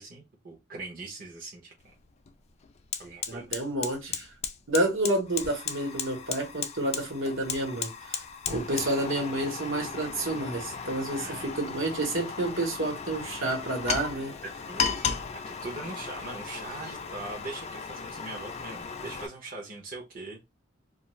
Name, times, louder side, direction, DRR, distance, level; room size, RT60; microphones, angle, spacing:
voice 1, 0.0-1.9 3.0-3.6 11.2-11.5 14.7-20.5, right 2 dB, 50° right, 0.7 m, -41 dB
Fire, 1.8-1.9 2.3-19.3, left 6 dB, 35° left, 0.3 m, -36 dB
voice 2, 3.3-4.3 4.7-8.2 8.5-14.3, right 1 dB, 80° right, 1.1 m, -29 dB
2.3 x 2.3 x 3.0 m
head